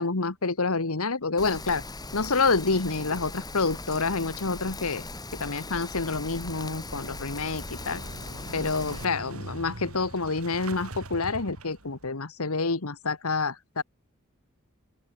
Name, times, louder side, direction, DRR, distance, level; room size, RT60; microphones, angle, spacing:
voice 1, 0.0-1.8 2.1-5.1 5.4-8.0 8.5-13.8, left 4 dB, 85° left, 1.6 m, -28 dB
Rain, 1.4-9.0, left 2 dB, 20° left, 5.1 m, -39 dB
Motorcycle / Engine starting, 6.3-12.1, right 1 dB, 85° right, 4.1 m, -42 dB
open air
head